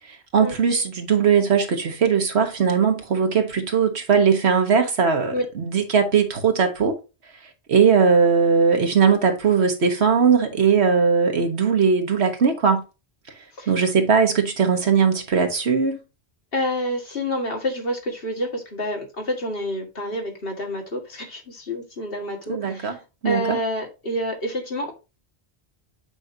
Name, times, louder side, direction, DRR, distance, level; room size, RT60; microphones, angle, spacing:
voice 1, 0.3-7.0 7.7-12.8 13.7-16.0 22.5-23.0 23.2-23.6, right 6 dB, 75° right, 1.6 m, -19 dB
voice 2, 16.5-23.0 23.2-24.9, equal, 60° left, 2.1 m, -28 dB
8.4 x 5.2 x 2.7 m
omnidirectional pair, 1.1 m